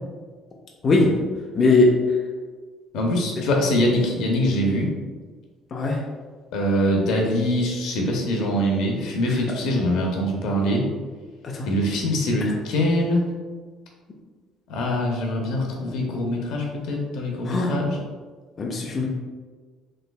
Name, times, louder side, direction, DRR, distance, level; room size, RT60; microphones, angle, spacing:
voice 1, 1.5-1.9 5.7-6.0 9.3-9.4 11.4-11.7 17.5-17.7 18.6-19.1, left 3 dB, 35° left, -2 dB, 0.5 m, -20 dB
voice 2, 2.9-4.9 6.5-10.9 11.7-13.2 14.7-18.0, left 1 dB, 75° left, 0 dB, 0.7 m, -23 dB
3.3 x 3.0 x 2.3 m, 1.4 s
cardioid pair, 125°, 0 cm